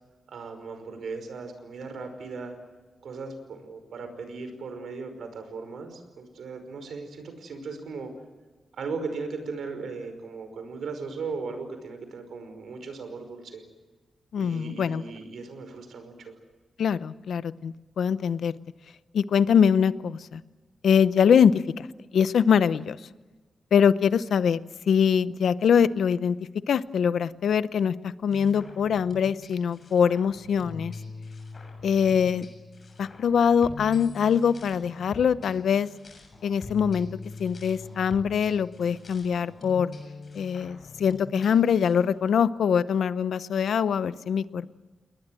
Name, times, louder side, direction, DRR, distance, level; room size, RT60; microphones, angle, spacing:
voice 1, 0.3-2.5 3.0-8.1 8.7-13.6 14.4-16.4, right 4 dB, 80° right, 8 dB, 5.3 m, -37 dB
voice 2, 14.3-15.0 16.8-18.5 19.1-20.4 20.8-21.9 22.1-23.0 23.7-24.6 24.9-26.4 26.7-30.9 31.8-32.5 33.0-35.9 36.4-37.1 37.4-39.9 40.3-44.7, left 7 dB, 80° left, 15 dB, 0.7 m, -23 dB
sound 1, 28.3-42.0, left 3 dB, 35° left, 7.2 m, -43 dB
29.5 x 21.0 x 7.7 m, 1.3 s
wide cardioid pair, 160°, 0 cm